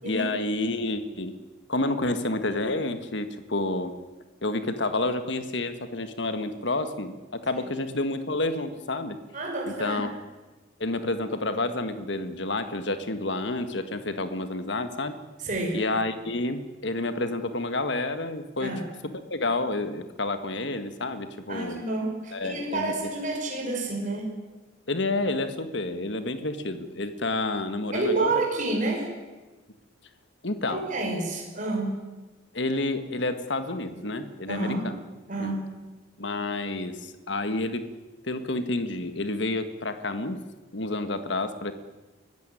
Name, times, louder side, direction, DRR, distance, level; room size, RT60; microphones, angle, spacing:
voice 1, 0.0-1.3 1.7-3.9 4.4-9.2 9.7-10.1 10.8-15.2 15.7-18.7 19.3-21.8 22.3-22.9 24.9-28.3 30.4-30.8 32.5-35.0 35.4-35.5 36.2-37.9 38.2-40.4 40.7-41.7, left 2 dB, 60° left, 10 dB, 1.6 m, -29 dB
voice 2, 9.3-10.0 15.4-15.8 18.6-18.8 21.5-24.3 27.9-29.1 30.7-32.0 34.5-34.9 35.3-35.7, right 2 dB, 40° right, 0 dB, 5.6 m, -29 dB
24.0 x 15.5 x 9.9 m, 1.2 s
head